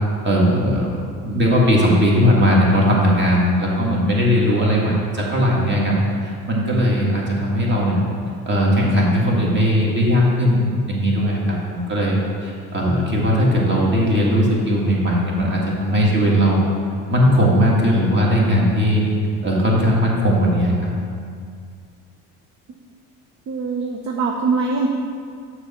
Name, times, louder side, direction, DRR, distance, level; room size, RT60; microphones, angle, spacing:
voice 1, 0.2-0.9 1.2-6.0 6.2-8.0 8.5-16.6 17.1-19.0 19.4-20.9, equal, 35° right, -3 dB, 1.9 m, -18 dB
voice 2, 23.5-24.9, right 4 dB, 55° right, 1 dB, 0.7 m, -22 dB
6.6 x 6.3 x 4.2 m, 2.2 s
cardioid pair, 95°, 33 cm